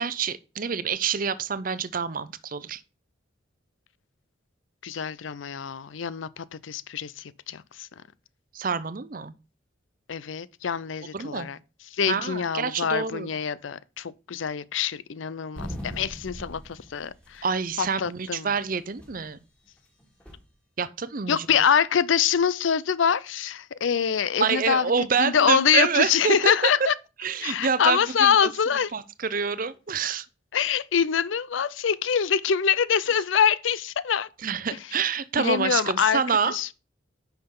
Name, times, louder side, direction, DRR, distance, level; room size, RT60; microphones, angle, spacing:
voice 1, 0.0-2.8 8.5-9.3 11.1-11.5 12.1-13.3 17.4-19.4 20.8-21.5 24.4-26.5 27.2-28.4 28.9-30.2 34.4-36.6, right 6 dB, 45° right, 0.6 m, -27 dB
voice 2, 4.8-7.9 10.1-11.6 11.9-17.4 17.8-18.5 21.3-24.9 25.2-26.9 27.4-28.9 30.5-34.3 35.4-36.2 36.5-36.7, left 7 dB, 80° left, 0.5 m, -25 dB
sound 1, 15.6-17.6 17.8-17.9 18.6-19.2 20.0-20.5, equal, 5° left, 2.2 m, -40 dB
9.6 x 5.8 x 3.8 m
head